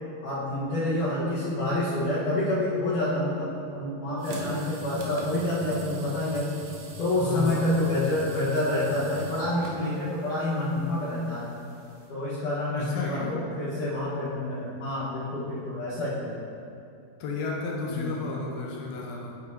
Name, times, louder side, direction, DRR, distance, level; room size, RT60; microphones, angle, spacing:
voice 1, 0.2-6.5 7.0-11.5 12.1-16.3 17.9-18.1, left 1 dB, 65° left, -11 dB, 2.3 m, -28 dB
sound 1, 4.2-12.1, right 1 dB, 70° right, 2.2 m, -41 dB
voice 2, 7.2-7.7 12.8-13.4 17.2-19.4, left 3 dB, 80° left, -2 dB, 2.5 m, -32 dB
8.8 x 7.8 x 2.7 m, 2.6 s
omnidirectional pair, 4.6 m